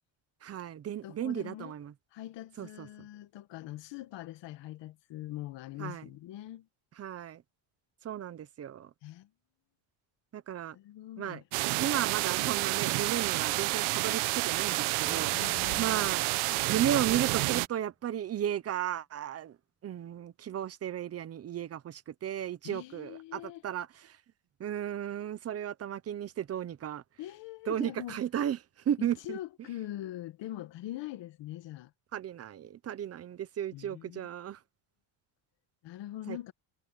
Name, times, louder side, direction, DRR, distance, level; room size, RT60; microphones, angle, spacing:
voice 1, 0.4-1.9 2.6-3.1 5.8-6.1 7.0-7.4 8.0-8.9 10.3-10.8 11.2-11.4 11.8-15.3 15.8-19.6 19.8-24.2 24.6-27.0 27.7-28.6 28.8-29.4 32.1-34.6 36.3-36.5, right 10 dB, 30° right, 0.8 m, -34 dB
voice 2, 1.0-1.7 2.1-6.7 9.0-9.3 10.7-11.4 15.3-16.1 22.6-23.6 27.2-28.2 29.0-31.9 33.7-34.3 35.8-36.5, left 14 dB, 60° left, 1.7 m, -42 dB
sound 1, 11.5-17.7, right 20 dB, 80° right, 1.0 m, -29 dB
sound 2, 17.7-17.9, right 3 dB, 10° right, 7.0 m, -53 dB
cardioid pair, 150°, 48 cm